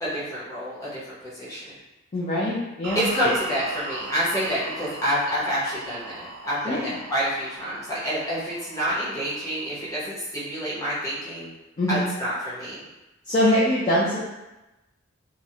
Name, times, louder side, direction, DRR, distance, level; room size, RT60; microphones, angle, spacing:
voice 1, 0.0-1.7 2.9-11.5 11.9-12.8, equal, 15° left, -10 dB, 0.7 m, -28 dB
voice 2, 2.1-3.1 6.6-6.9 11.8-12.1 13.3-14.2, left 1 dB, 30° left, -8 dB, 0.3 m, -23 dB
sound 1, 2.8-10.0, right 3 dB, 80° right, 0.4 m, -39 dB
2.4 x 2.0 x 2.7 m, 1.0 s
head